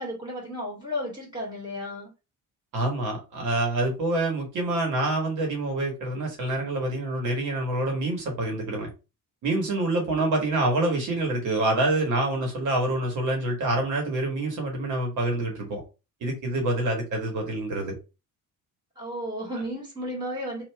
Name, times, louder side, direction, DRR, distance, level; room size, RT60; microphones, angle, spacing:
voice 1, 0.0-2.1 19.0-20.6, equal, 15° right, 2.2 m, -33 dB
voice 2, 2.7-8.9 9.4-15.8 16.2-18.0, right 2 dB, 65° right, 1.5 m, -26 dB
3.3 x 2.8 x 4.6 m
cardioid pair, 170°, 32 cm